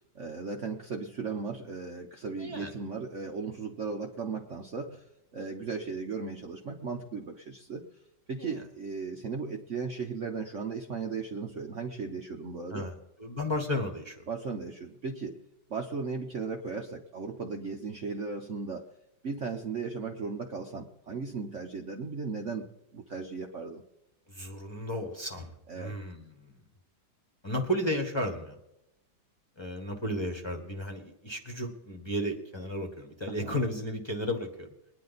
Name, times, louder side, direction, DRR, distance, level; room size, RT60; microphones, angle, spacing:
voice 1, 0.0-5.0 5.3-7.8 8.3-12.9 14.3-15.4 15.7-18.9 19.2-23.8 25.7-25.9 33.3-33.6, right 4 dB, 50° right, 2 dB, 1.0 m, -36 dB
voice 2, 2.4-2.7 8.4-8.6 12.7-14.2 24.3-26.6 27.4-28.6 29.6-34.7, equal, 15° left, 3 dB, 1.2 m, -34 dB
21.5 x 10.5 x 4.1 m, 0.88 s
omnidirectional pair, 2.0 m